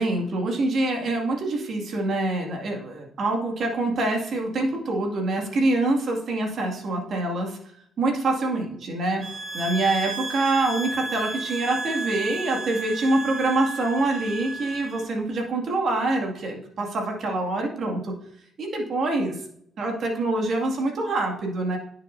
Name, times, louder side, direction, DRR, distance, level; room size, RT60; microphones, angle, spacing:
voice 1, 0.0-7.6 8.0-9.2 9.5-18.1 18.6-19.4 19.8-21.8, right 2 dB, 60° right, 1 dB, 2.2 m, -25 dB
sound 1, 9.2-15.1, right 2 dB, 40° right, 0.8 m, -33 dB
10.0 x 6.8 x 2.7 m, 0.68 s
cardioid pair, 90°, 0 cm